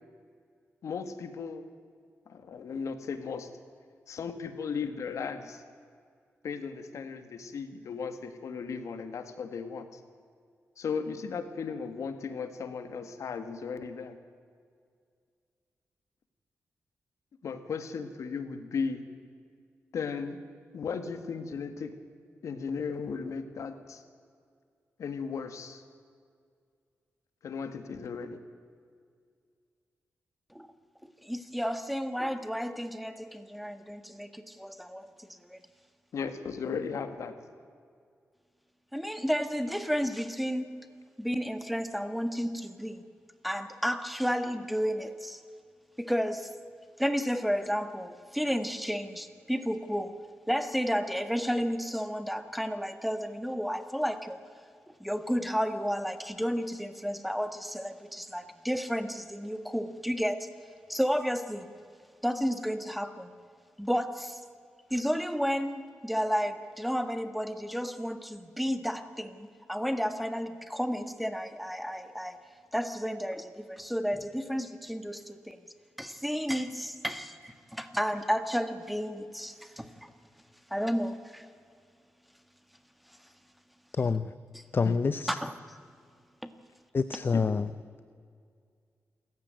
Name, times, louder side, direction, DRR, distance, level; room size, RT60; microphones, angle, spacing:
voice 1, 0.8-1.6 2.3-3.5 4.1-5.6 6.4-10.0 10.8-14.2 17.4-19.1 19.9-20.4 20.7-21.9 22.4-24.0 25.0-25.8 27.4-28.4 36.1-37.3 84.8-85.0 87.3-87.4, left 5 dB, 85° left, 9 dB, 1.9 m, -36 dB
voice 2, 31.0-35.6 38.9-40.7 41.2-43.0 43.4-45.4 46.0-46.5 47.0-50.2 50.5-54.4 55.0-60.5 60.9-61.7 62.2-63.3 63.8-64.4 64.9-72.4 72.7-75.6 76.0-80.1 80.7-81.5 84.5-84.7 85.4-85.5 86.4-86.5, equal, ahead, 9 dB, 1.7 m, -32 dB
voice 3, 84.0-84.3 84.7-85.4 86.9-87.7, left 4 dB, 45° left, 13 dB, 0.7 m, -27 dB
27.5 x 15.0 x 9.1 m, 2.2 s
cardioid pair, 85°, 5 cm